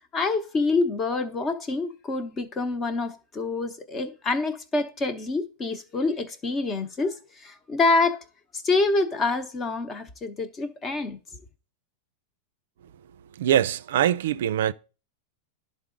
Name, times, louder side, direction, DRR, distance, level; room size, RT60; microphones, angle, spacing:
voice 1, 0.1-8.2 8.5-11.2, left 3 dB, 20° left, 0.9 m, -26 dB
voice 2, 13.3-14.7, right 11 dB, 80° right, 0.3 m, -23 dB
11.0 x 3.7 x 3.8 m
supercardioid pair, 140°, 0 cm